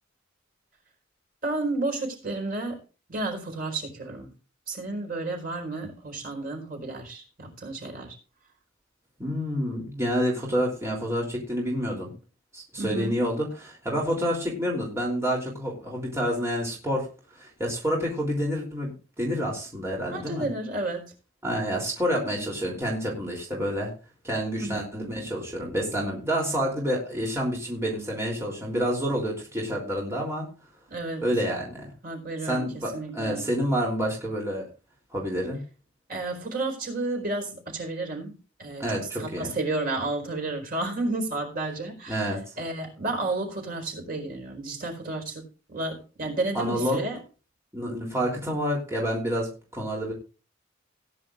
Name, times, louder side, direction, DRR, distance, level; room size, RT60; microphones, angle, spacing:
voice 1, 1.4-2.8 3.1-4.3 4.7-8.2 12.8-13.1 20.1-21.1 24.6-24.8 30.9-31.3 32.0-33.4 36.1-38.9 39.2-42.3 42.6-47.2, right 2 dB, 50° right, 2 dB, 4.6 m, -31 dB
voice 2, 9.2-12.1 12.5-17.1 17.3-20.5 21.4-23.9 24.2-30.5 31.2-31.9 32.4-34.6 35.1-35.6 38.8-39.5 42.1-42.5 46.5-47.0 47.7-50.1, equal, 15° right, -2 dB, 3.3 m, -28 dB
18.5 x 10.0 x 2.5 m, 0.34 s
head